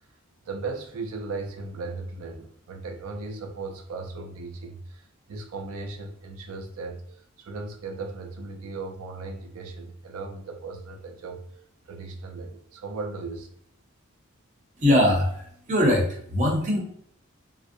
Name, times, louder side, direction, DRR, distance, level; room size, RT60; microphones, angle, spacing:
voice 1, 0.4-11.4 11.9-13.6, right 3 dB, 90° right, 3 dB, 0.4 m, -37 dB
voice 2, 14.8-16.8, left 1 dB, 35° right, -1 dB, 0.6 m, -22 dB
2.5 x 2.0 x 2.5 m, 0.66 s
head